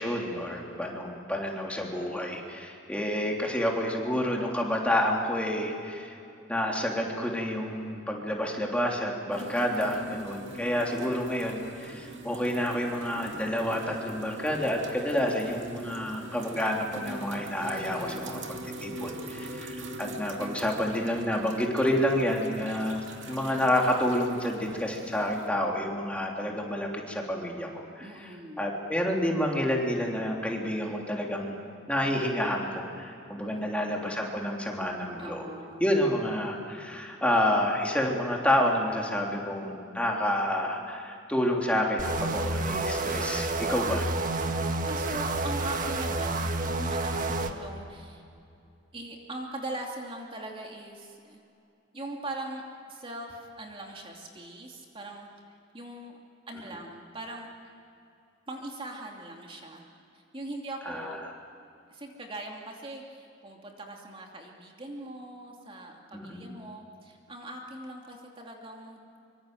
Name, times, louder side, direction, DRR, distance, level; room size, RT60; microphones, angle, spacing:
voice 1, 0.0-6.2 6.5-28.3 28.6-31.5 31.9-35.5 35.8-44.1 60.8-61.2 66.1-66.5, left 1 dB, 5° left, -1 dB, 3.4 m, -29 dB
voice 2, 9.3-10.4 17.6-18.4 28.0-28.7 33.3-33.9 35.2-35.9 44.8-48.2 48.9-51.4 51.9-55.3 55.7-56.2 56.5-57.7 58.5-59.8 60.1-61.2 61.9-69.0, right 1 dB, 30° right, 0 dB, 2.7 m, -41 dB
sound 1, 9.3-25.5, right 1 dB, 75° right, 2.5 m, -43 dB
sound 2, 42.0-47.5, right 2 dB, 45° right, 1.6 m, -29 dB
25.0 x 25.0 x 7.9 m, 2.6 s
head